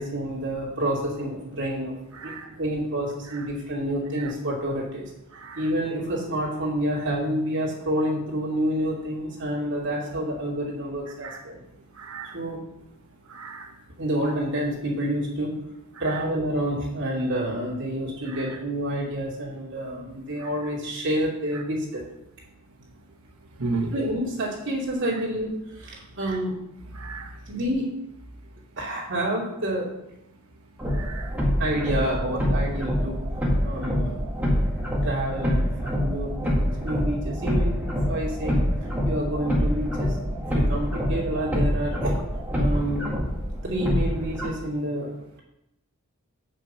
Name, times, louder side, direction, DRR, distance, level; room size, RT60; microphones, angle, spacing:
voice 1, 0.0-5.1 5.6-11.6 12.3-12.6 14.0-15.6 16.0-22.0 23.9-26.6 27.5-27.9 28.8-29.9 31.6-33.2 33.6-34.2 35.0-38.6 39.0-40.2 40.5-42.2 42.5-43.1 43.6-45.1, right 1 dB, 55° right, -4 dB, 2.8 m, -28 dB
voice 2, 12.0-12.3 13.3-13.7 23.6-23.9 27.0-27.3 31.0-31.3, right 3 dB, 75° right, 4 dB, 1.1 m, -32 dB
sound 1, 30.8-44.5, equal, 5° right, 1.7 m, -26 dB
7.9 x 6.0 x 5.6 m, 0.86 s
head